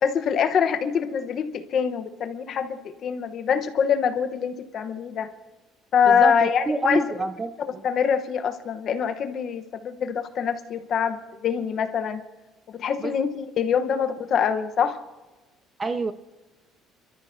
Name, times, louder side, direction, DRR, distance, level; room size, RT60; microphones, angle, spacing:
voice 1, 0.0-5.3 5.9-7.0 7.8-12.2 12.7-15.0, left 7 dB, 40° left, 0.9 m, -24 dB
voice 2, 6.1-7.8 13.0-13.2 15.8-16.1, right 3 dB, 15° right, 0.4 m, -27 dB
28.5 x 13.5 x 2.7 m
cardioid pair, 170°, 0 cm